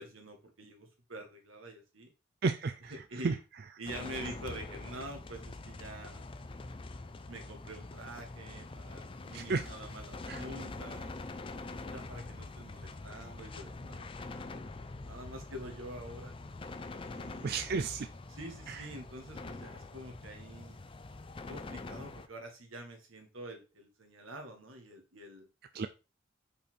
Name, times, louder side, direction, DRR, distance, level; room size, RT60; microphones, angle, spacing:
voice 1, 0.0-2.1 3.1-3.4 3.8-6.3 7.3-11.1 11.9-14.5 15.0-16.3 17.0-17.7 18.3-20.8 21.5-25.5, right 1 dB, 85° right, 3 dB, 1.8 m, -46 dB
voice 2, 2.4-2.9 3.2-3.4 9.3-9.7 10.3-10.4 17.4-18.1 18.7-18.9 25.7-25.9, right 4 dB, 50° right, 9 dB, 0.4 m, -32 dB
sound 1, 3.8-22.3, left 2 dB, 25° left, 0.5 m, -45 dB
5.4 x 4.3 x 4.3 m, 0.29 s
head